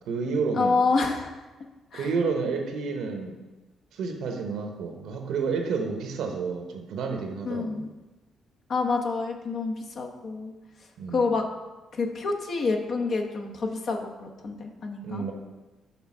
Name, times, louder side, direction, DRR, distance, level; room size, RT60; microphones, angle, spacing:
voice 1, 0.0-0.8 1.9-3.4 3.9-7.8 11.0-11.3 15.0-15.3, right 4 dB, 80° right, 4 dB, 0.9 m, -30 dB
voice 2, 0.6-1.3 1.9-2.1 7.4-7.9 8.7-10.5 11.1-11.5 11.9-15.2, left 4 dB, 60° left, 2 dB, 0.9 m, -27 dB
6.1 x 3.5 x 6.0 m, 1.2 s
cardioid pair, 90°, 0 cm